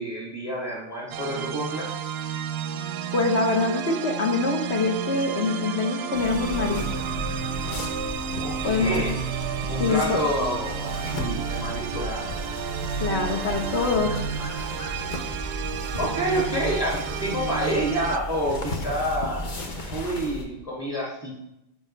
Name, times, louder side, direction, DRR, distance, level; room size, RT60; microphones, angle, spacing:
voice 1, 0.0-1.9 8.4-9.3 9.7-12.5 16.0-19.5 19.9-21.3, equal, 20° left, -4 dB, 2.2 m, -28 dB
sound 1, 1.1-18.2, right 9 dB, 65° right, 0.7 m, -32 dB
voice 2, 3.1-6.8 8.6-9.1 9.8-10.2 13.0-14.2, left 3 dB, 60° left, 2 dB, 1.5 m, -24 dB
sound 2, 6.1-20.4, left 1 dB, 40° left, 1.1 m, -34 dB
14.0 x 5.2 x 3.3 m, 0.86 s
omnidirectional pair, 1.3 m